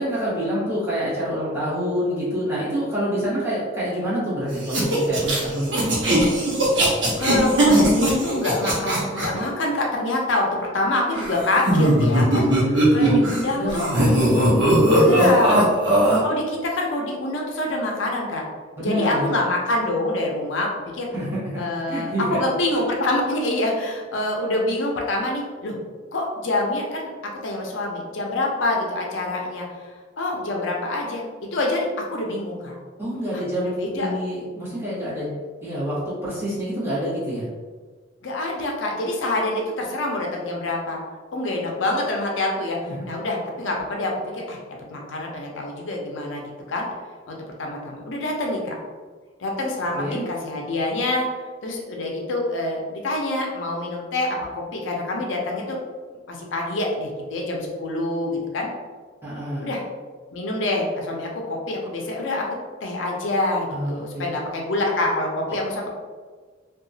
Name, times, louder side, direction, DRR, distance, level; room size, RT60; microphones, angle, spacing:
voice 1, 0.0-5.9 13.1-13.3 13.5-15.2 18.8-19.2 21.1-21.5 21.9-22.5 33.0-35.4 35.6-37.5 42.8-43.0 50.0-50.2 59.2-59.7 63.7-64.2, equal, 15° right, -10 dB, 1.1 m, -27 dB
sound 1, 4.6-9.3 11.1-13.4 13.7-16.2, right 1 dB, 70° right, 0.8 m, -19 dB
voice 2, 6.9-13.9 14.9-15.7 16.2-18.4 18.8-21.1 21.6-25.8 26.1-27.1 27.4-29.7 30.2-31.2 31.5-32.8 33.8-34.2 38.2-41.0 41.3-42.8 43.0-44.6 44.9-46.9 47.3-48.8 49.4-51.3 51.6-55.8 56.3-58.7 59.6-59.8 60.3-62.5 62.8-65.9, left 2 dB, 80° left, 0 dB, 0.5 m, -26 dB
2.8 x 2.3 x 2.6 m, 1.5 s
head